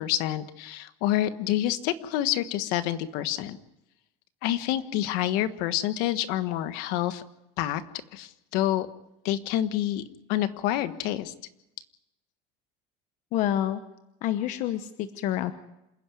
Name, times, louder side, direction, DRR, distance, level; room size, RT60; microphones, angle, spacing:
voice 1, 0.0-3.6 4.4-7.2 7.6-7.8 8.1-8.9 9.2-10.0 10.3-11.3, left 13 dB, 65° left, 12 dB, 1.4 m, -27 dB
voice 2, 13.3-13.8 14.2-15.5, left 12 dB, 50° left, 10 dB, 1.1 m, -28 dB
27.5 x 10.5 x 9.4 m, 0.88 s
cardioid pair, 160°, 16 cm